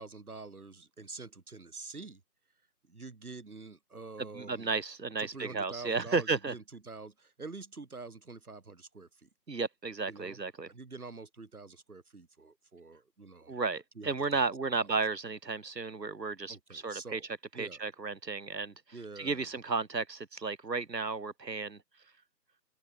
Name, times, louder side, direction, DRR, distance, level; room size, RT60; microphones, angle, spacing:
voice 1, 0.0-2.2 2.9-4.7 5.2-9.3 10.1-10.4 10.7-13.5 14.0-14.9 16.5-17.3 17.5-17.8 18.9-19.5, right 3 dB, 60° right, 1.9 m, -47 dB
voice 2, 4.2-6.5 9.5-10.7 13.5-17.2 17.6-21.8, right 4 dB, 80° right, 2.1 m, -33 dB
open air
figure-of-eight pair, 175°, 49 cm